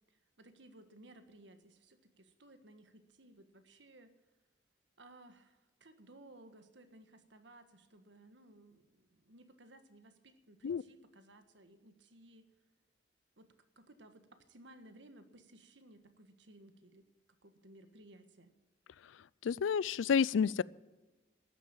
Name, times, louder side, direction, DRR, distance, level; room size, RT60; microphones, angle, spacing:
voice 1, 0.1-4.1 5.0-12.5 13.4-17.0 17.4-18.5, right 1 dB, 70° right, 9 dB, 1.5 m, -59 dB
voice 2, 19.4-20.6, left 6 dB, 85° left, 23 dB, 0.4 m, -30 dB
13.0 x 9.8 x 8.7 m, 1.1 s
head